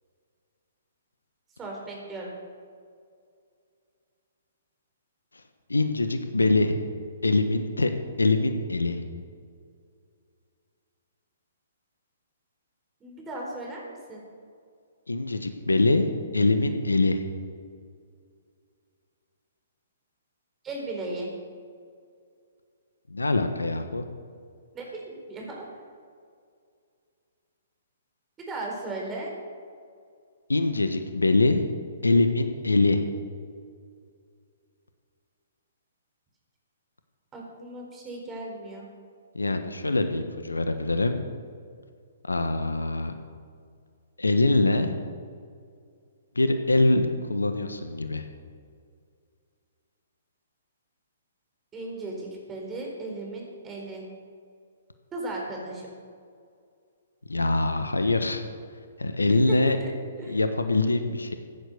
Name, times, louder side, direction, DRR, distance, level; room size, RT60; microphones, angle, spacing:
voice 1, 1.6-2.3 13.0-14.2 20.6-21.3 24.7-25.6 28.4-29.3 37.3-38.9 51.7-54.0 55.1-55.9 59.3-60.4, right 2 dB, 15° right, -1 dB, 4.3 m, -36 dB
voice 2, 5.7-6.8 7.2-7.9 8.2-9.0 15.1-16.1 16.3-17.2 23.1-24.0 30.5-31.6 32.0-33.0 39.3-41.2 42.2-43.1 44.2-44.9 46.3-48.2 57.3-58.4 59.0-59.8 60.2-61.4, left 2 dB, 85° left, 8 dB, 1.2 m, -23 dB
15.5 x 9.6 x 6.6 m, 2.2 s
figure-of-eight pair, 125°, 0 cm